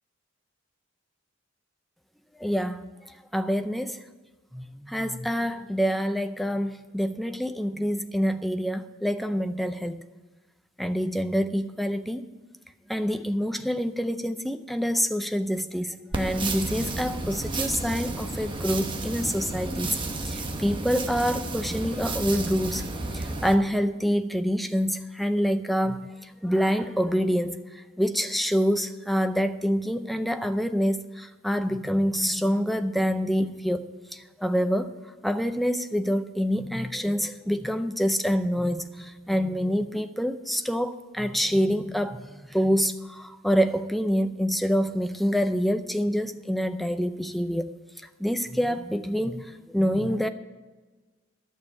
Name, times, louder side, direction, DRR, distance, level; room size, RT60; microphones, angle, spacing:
voice 1, 2.4-4.0 4.5-10.0 10.8-12.2 12.9-22.9 23.1-34.9 35.2-47.7 48.2-50.3, equal, ahead, 0.5 m, -26 dB
sound 1, 16.1-23.5, right 2 dB, 25° right, 0.9 m, -32 dB
12.0 x 6.6 x 8.4 m
head